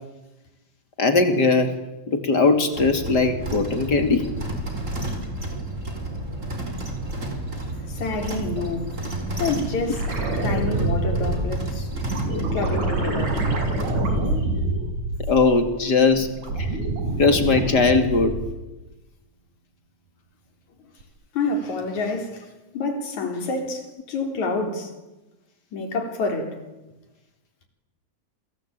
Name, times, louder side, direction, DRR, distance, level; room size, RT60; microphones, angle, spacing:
voice 1, 1.0-1.8 2.1-4.3 15.3-16.7 17.2-18.4, left 4 dB, 35° left, 3.1 m, -20 dB
sound 1, 2.7-13.9, right 1 dB, 25° right, 5.0 m, -31 dB
voice 2, 7.9-8.9 9.4-10.0 10.4-11.9 12.5-13.4 21.3-22.5 22.7-24.9 25.7-26.6, left 3 dB, 70° left, 5.1 m, -28 dB
sound 2, 9.9-15.7 16.1-18.6 21.0-21.1, right 2 dB, 85° right, 6.8 m, -26 dB
28.5 x 23.5 x 9.0 m
omnidirectional pair, 3.4 m